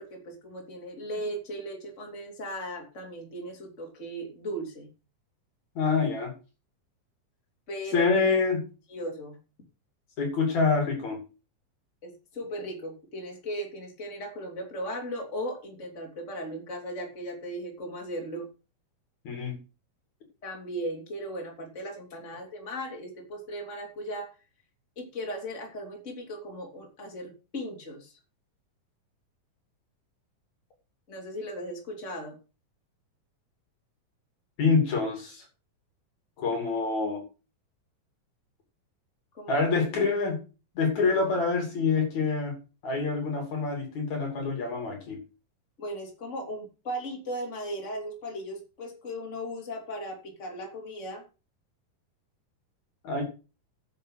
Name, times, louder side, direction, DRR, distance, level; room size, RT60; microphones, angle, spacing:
voice 1, 0.0-4.9 7.7-8.0 8.9-9.4 12.0-18.5 20.4-24.3 25.0-28.1 31.1-32.4 39.3-39.6 45.8-51.2, equal, 20° left, 1 dB, 3.5 m, -37 dB
voice 2, 5.8-6.3 7.9-8.6 10.2-11.2 19.3-19.6 34.6-35.4 36.4-37.2 39.5-40.4 40.8-42.6 42.8-45.2 53.0-53.2, left 4 dB, 55° left, 3 dB, 4.1 m, -26 dB
10.5 x 7.5 x 6.5 m, 0.32 s
omnidirectional pair, 4.0 m